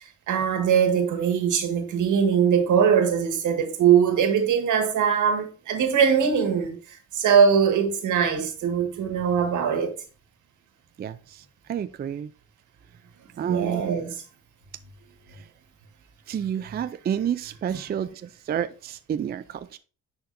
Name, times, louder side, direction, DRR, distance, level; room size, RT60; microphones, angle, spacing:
voice 1, 0.3-9.9 13.4-14.1, right 7 dB, 75° right, 1.7 m, -21 dB
voice 2, 11.0-12.3 13.4-13.8 15.3-15.5 16.3-19.8, right 9 dB, 35° right, 0.4 m, -30 dB
10.0 x 4.4 x 2.6 m
cardioid pair, 90°, 30 cm